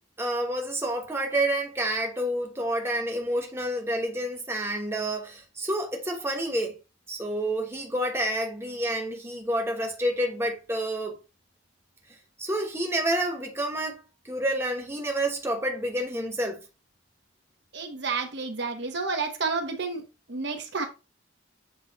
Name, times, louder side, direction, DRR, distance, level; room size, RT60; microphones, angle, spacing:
voice 1, 0.2-6.7 7.1-11.2 12.4-14.0 14.2-16.6, right 1 dB, 10° right, 1.1 m, -29 dB
voice 2, 17.7-20.0 20.3-20.8, right 4 dB, 55° right, 1.0 m, -30 dB
7.8 x 3.1 x 4.1 m
head